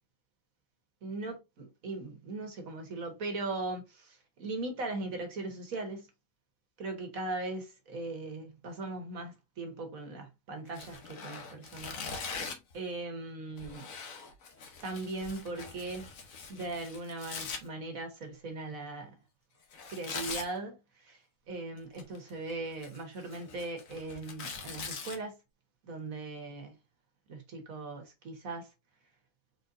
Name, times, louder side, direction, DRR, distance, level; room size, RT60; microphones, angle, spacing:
voice 1, 1.0-6.1 6.8-12.4 12.7-13.9 14.8-16.1 16.5-19.2 19.9-25.4 25.8-26.8 27.3-28.7, right 2 dB, 80° right, 1.8 m, -39 dB
Tearing, 10.7-12.7 13.6-17.6 19.7-20.5 21.8-22.3 22.7-25.2, left 5 dB, 80° left, 1.4 m, -42 dB
4.5 x 4.2 x 2.6 m
omnidirectional pair, 1.4 m